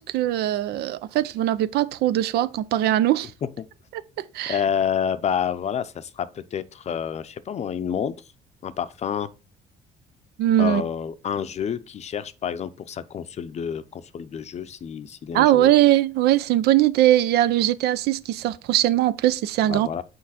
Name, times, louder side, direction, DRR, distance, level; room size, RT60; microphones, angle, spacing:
voice 1, 0.0-3.3 3.9-4.6 10.4-10.8 15.3-19.9, right 13 dB, 75° right, 0.5 m, -21 dB
voice 2, 4.5-8.2 8.6-9.3 10.6-15.7 19.7-20.0, left 8 dB, 40° left, 0.6 m, -28 dB
6.4 x 4.6 x 4.1 m
cardioid pair, 110°, 17 cm